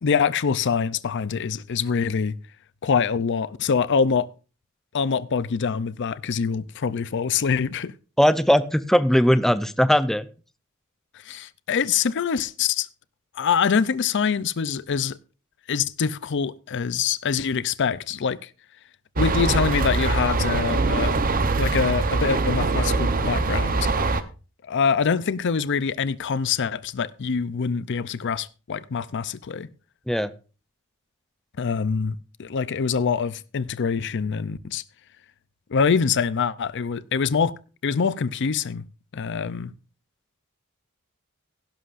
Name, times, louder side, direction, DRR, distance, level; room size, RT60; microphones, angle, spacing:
voice 1, 0.0-2.4 2.8-4.3 4.9-7.9 11.1-12.9 13.3-15.2 15.7-18.5 19.2-21.1 21.6-23.9 24.6-29.7 31.6-34.8 35.7-37.5 37.8-38.8 39.1-39.7, left 6 dB, 55° left, 0.5 m, -24 dB
voice 2, 8.2-10.3 30.1-30.3, equal, ahead, 0.5 m, -19 dB
sound 1, 19.2-24.2, right 3 dB, 40° right, 0.9 m, -23 dB
16.5 x 11.5 x 2.5 m
head